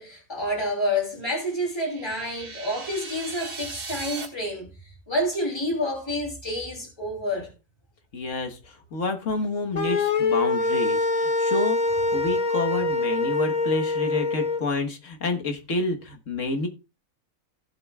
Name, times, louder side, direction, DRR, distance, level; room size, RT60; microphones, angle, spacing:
voice 1, 0.0-4.7 5.1-7.5, left 1 dB, 20° left, 3.1 m, -28 dB
sound 1, 1.5-4.3, right 4 dB, 85° right, 2.3 m, -38 dB
voice 2, 8.1-16.7, left 3 dB, 65° left, 1.7 m, -29 dB
sound 2, 9.7-14.6, left 3 dB, 35° left, 0.8 m, -24 dB
16.5 x 7.7 x 2.3 m
omnidirectional pair, 1.4 m